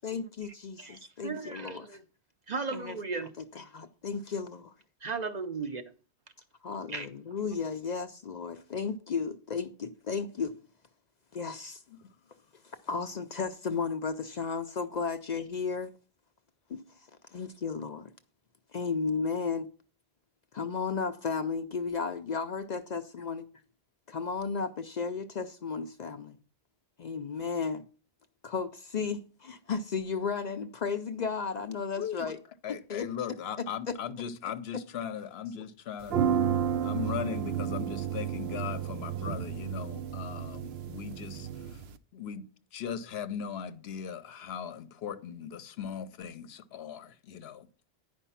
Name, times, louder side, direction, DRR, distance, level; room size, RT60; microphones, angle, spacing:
voice 1, 0.0-1.9 2.7-3.0 3.4-4.7 6.6-10.5 11.3-11.8 12.6-15.9 16.7-18.1 18.7-19.7 20.5-23.5 24.1-26.4 27.0-27.8 28.4-32.4 32.7-33.1 33.9-34.0, left 5 dB, 50° left, 0.6 m, -34 dB
voice 2, 0.8-2.0 2.5-3.3 5.0-5.8 6.9-7.1, right 4 dB, 50° right, 0.7 m, -36 dB
voice 3, 32.0-32.3 32.6-36.3 36.8-41.8 42.1-42.5 42.7-47.7, left 8 dB, 75° left, 0.9 m, -38 dB
sound 1, 36.0-41.9, right 8 dB, 75° right, 0.8 m, -32 dB
10.0 x 5.2 x 5.6 m
omnidirectional pair, 1.1 m